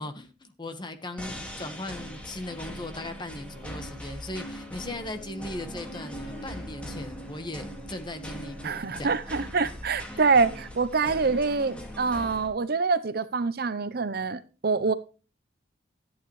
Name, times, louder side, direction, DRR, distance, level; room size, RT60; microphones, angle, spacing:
voice 1, 0.0-9.2, left 1 dB, 25° left, 1.4 m, -38 dB
sound 1, 1.2-12.5, left 1 dB, 5° left, 2.1 m, -41 dB
sound 2, 3.3-9.2, right 2 dB, 35° right, 3.0 m, -47 dB
voice 2, 8.6-14.9, right 4 dB, 55° right, 0.7 m, -25 dB
14.0 x 9.0 x 3.2 m
head